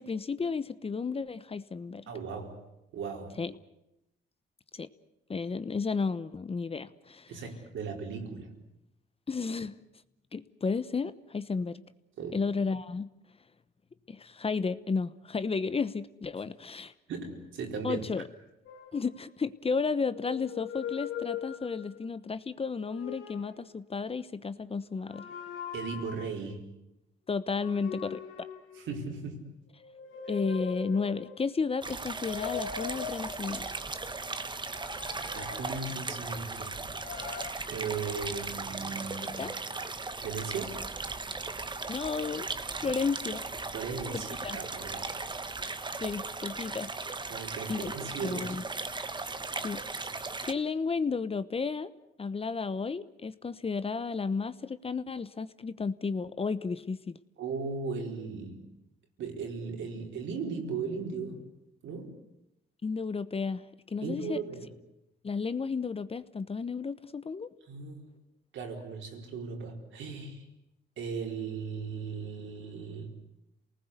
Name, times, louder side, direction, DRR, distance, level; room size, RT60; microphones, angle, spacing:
voice 1, 0.0-2.1 3.4-3.5 4.7-4.9 5.3-7.3 9.3-9.8 10.3-11.8 12.3-13.1 14.1-16.9 17.8-18.2 18.9-25.3 27.3-28.5 30.3-33.7 39.4-39.5 41.9-42.5 42.8-43.4 44.4-44.6 46.0-46.9 47.7-47.9 48.2-48.6 49.6-49.8 50.4-51.9 52.2-57.2 62.8-63.6 63.9-64.4 65.2-67.5, left 4 dB, 30° left, 14 dB, 1.0 m, -33 dB
voice 2, 2.1-2.6 2.9-3.4 7.3-8.5 12.2-12.4 17.1-18.1 25.7-26.7 28.8-29.4 35.3-36.8 37.7-39.4 40.2-40.8 42.8-42.9 43.7-45.1 47.3-48.5 57.4-58.7 59.2-61.5 61.8-62.2 64.0-64.7 67.7-68.1 68.5-70.5 71.0-73.1, right 5 dB, 75° right, 2 dB, 4.5 m, -37 dB
sound 1, 18.7-19.6 20.1-22.1 22.7-23.7 25.0-26.4 27.6-29.3 29.8-31.5 32.1-33.7 34.6-36.4 36.9-37.5, left 8 dB, 85° left, 2.6 m, -41 dB
sound 2, 31.8-50.5, right 3 dB, 25° right, 1.3 m, -37 dB
28.5 x 19.5 x 8.3 m, 0.88 s
cardioid pair, 90°, 20 cm